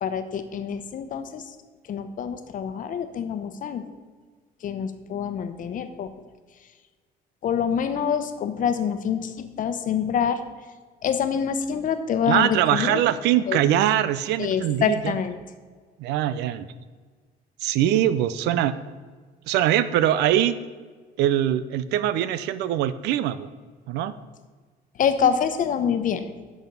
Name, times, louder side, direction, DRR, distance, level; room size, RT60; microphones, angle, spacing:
voice 1, 0.0-1.4 1.9-3.9 4.6-6.1 7.4-10.4 11.0-13.0 13.5-13.6 14.4-15.3 25.0-26.3, left 7 dB, 50° left, 9 dB, 0.9 m, -26 dB
voice 2, 12.3-15.2 16.0-16.7 17.6-18.8 19.5-20.5 21.2-23.5 23.9-24.1, right 11 dB, 85° right, 14 dB, 0.6 m, -22 dB
10.5 x 6.3 x 5.3 m, 1.5 s
cardioid pair, 110°, 17 cm